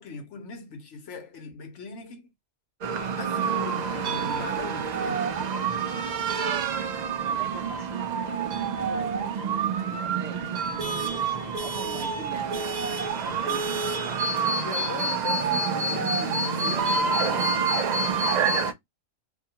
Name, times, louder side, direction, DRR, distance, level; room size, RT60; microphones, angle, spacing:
voice 1, 0.0-2.2 3.1-5.3 14.5-17.6, left 4 dB, 65° left, 1.1 m, -39 dB
sound 1, 2.8-18.7, right 5 dB, 90° right, 0.3 m, -27 dB
voice 2, 7.2-14.3, right 4 dB, 65° right, 0.9 m, -44 dB
2.7 x 2.2 x 2.8 m
omnidirectional pair, 1.3 m